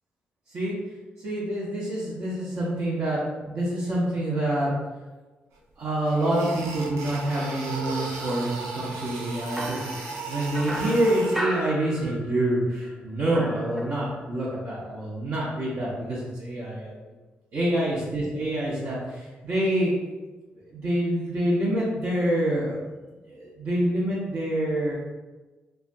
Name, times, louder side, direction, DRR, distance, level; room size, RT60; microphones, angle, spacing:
voice 1, 1.2-4.7 5.8-9.9 10.3-16.9 17.5-19.9 20.7-22.8 23.2-24.9, right 1 dB, 60° right, -10 dB, 0.9 m, -27 dB
sound 1, 5.6-5.7 6.1-11.4, right 3 dB, 80° right, 0.5 m, -35 dB
sound 2, 9.6-12.6 12.8-14.3, equal, ahead, 0.4 m, -35 dB
3.3 x 2.1 x 2.6 m, 1.2 s
hypercardioid pair, 40°, 5 cm